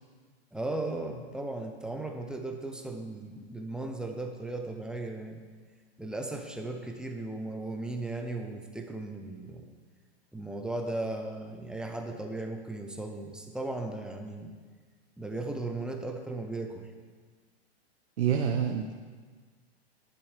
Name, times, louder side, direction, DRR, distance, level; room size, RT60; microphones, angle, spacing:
voice 1, 0.5-5.4 6.0-9.6 10.3-14.5 15.2-16.9, right 2 dB, ahead, 3 dB, 0.7 m, -36 dB
voice 2, 18.2-18.9, right 8 dB, 85° right, 3 dB, 1.0 m, -27 dB
11.0 x 10.5 x 3.4 m, 1.5 s
hypercardioid pair, 130°, 33 cm